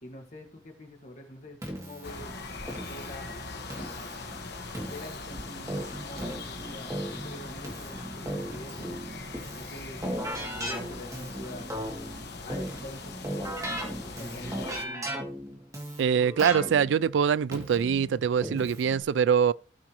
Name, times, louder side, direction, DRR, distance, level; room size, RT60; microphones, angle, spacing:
voice 1, 0.0-2.4 2.9-3.4 3.7-4.3 4.9-9.0 9.5-11.7 12.4-15.1, left 1 dB, 40° left, 1.8 m, -45 dB
Keyboard (musical), 1.6-19.0, right 1 dB, 20° right, 2.5 m, -38 dB
sound 1, 2.0-14.8, left 3 dB, 60° left, 1.4 m, -41 dB
voice 2, 16.0-19.5, right 7 dB, 75° right, 0.3 m, -24 dB
17.0 x 5.8 x 3.0 m
head